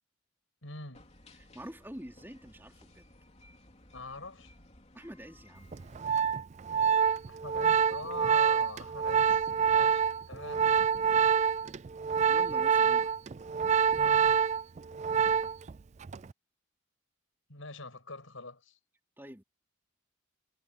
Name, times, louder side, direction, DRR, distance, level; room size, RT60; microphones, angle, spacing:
voice 1, 0.6-1.1 3.9-4.5 7.3-9.4 9.7-10.7 14.0-14.5 17.5-18.8, left 3 dB, 75° left, 6.2 m, -44 dB
sound 1, 0.9-6.1, left 1 dB, 30° left, 3.4 m, -58 dB
voice 2, 1.3-3.1 4.9-5.7 12.3-13.1 19.2-19.4, equal, 10° right, 3.8 m, -47 dB
Organ, 5.7-15.7 16.0-16.3, right 7 dB, 35° right, 0.3 m, -26 dB
head